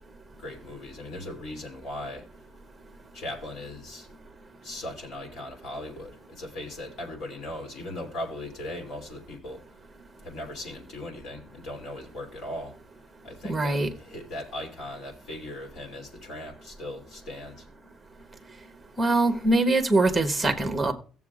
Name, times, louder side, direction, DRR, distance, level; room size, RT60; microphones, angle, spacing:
voice 1, 0.4-2.3 3.1-4.2 4.6-9.6 10.2-12.7 13.2-17.6, left 1 dB, 60° left, 2.9 m, -38 dB
voice 2, 13.5-13.9 19.0-20.9, right 2 dB, 5° right, 1.1 m, -23 dB
17.5 x 7.1 x 2.4 m
cardioid pair, 160°, 0 cm